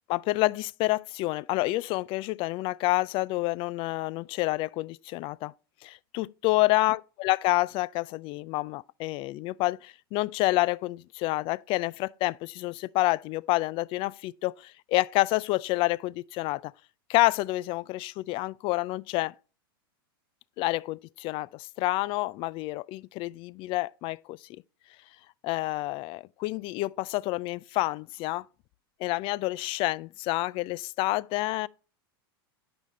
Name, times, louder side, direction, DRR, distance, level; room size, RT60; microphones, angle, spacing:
voice 1, 0.1-5.5 5.8-16.7 17.1-19.3 20.6-24.6 25.4-28.4 29.0-31.7, left 19 dB, 45° left, 0.4 m, -28 dB
9.4 x 5.1 x 4.0 m
hypercardioid pair, 110°, 13 cm